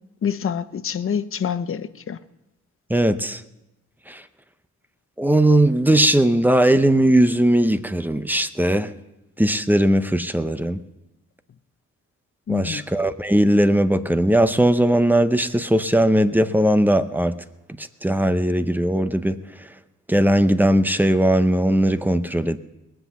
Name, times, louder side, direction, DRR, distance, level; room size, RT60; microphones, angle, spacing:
voice 1, 0.2-2.2 12.5-12.8, left 7 dB, 45° left, 13 dB, 0.7 m, -26 dB
voice 2, 2.9-3.4 4.1-4.2 5.2-8.9 9.4-10.8 12.5-17.3 17.8-19.4 20.1-22.6, right 1 dB, 5° right, 10 dB, 0.7 m, -19 dB
20.5 x 8.0 x 7.0 m, 0.96 s
cardioid pair, 110°, 30 cm